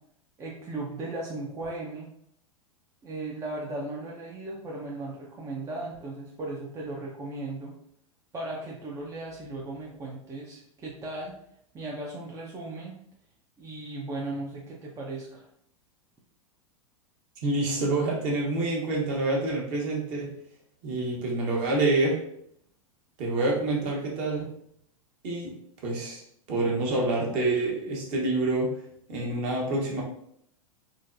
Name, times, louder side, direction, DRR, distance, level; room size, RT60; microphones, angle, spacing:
voice 1, 0.4-2.1 3.0-7.7 8.3-11.3 11.7-13.0 13.6-15.5, right 2 dB, 15° right, -3 dB, 0.5 m, -36 dB
voice 2, 17.4-20.3 20.8-22.2 23.2-24.5 25.2-25.5 25.8-26.2 26.5-28.7 29.1-30.0, right 2 dB, 45° right, -2 dB, 1.1 m, -27 dB
3.7 x 2.1 x 2.5 m, 0.69 s
figure-of-eight pair, 95°, 18 cm